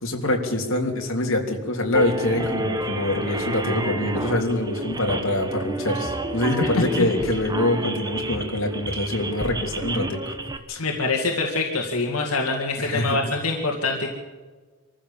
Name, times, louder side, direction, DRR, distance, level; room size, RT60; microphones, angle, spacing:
voice 1, 0.0-10.3 10.7-10.8 12.8-13.2, left 1 dB, 60° left, 1 dB, 3.3 m, -25 dB
sound 1, 1.9-10.6, right 1 dB, 20° right, 1.3 m, -30 dB
voice 2, 6.6-7.1 10.8-14.1, left 3 dB, 80° left, 1 dB, 2.2 m, -25 dB
25.0 x 14.5 x 7.4 m, 1.4 s
head